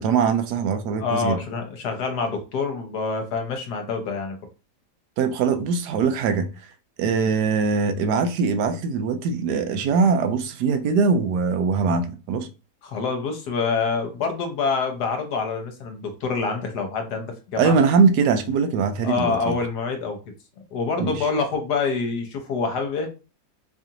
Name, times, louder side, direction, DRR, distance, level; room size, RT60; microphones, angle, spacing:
voice 1, 0.0-1.4 5.2-6.5 7.0-12.5 17.6-19.6 21.0-21.2, right 5 dB, 80° right, 1.2 m, -22 dB
voice 2, 1.0-4.4 7.0-7.3 12.8-17.7 19.0-20.2 20.7-23.1, left 4 dB, 75° left, 1.4 m, -26 dB
4.8 x 2.5 x 2.8 m
omnidirectional pair, 1.8 m